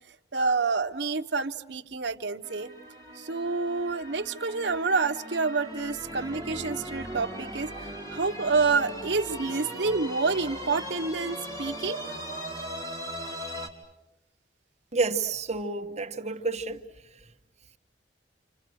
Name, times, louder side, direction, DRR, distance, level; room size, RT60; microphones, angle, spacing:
voice 1, 0.3-2.7 3.2-12.0, right 4 dB, 80° right, 1.0 m, -28 dB
sound 1, 2.4-13.7, equal, 20° left, 3.0 m, -39 dB
voice 2, 14.9-16.8, right 3 dB, 40° right, 1.4 m, -29 dB
28.5 x 26.5 x 6.4 m
head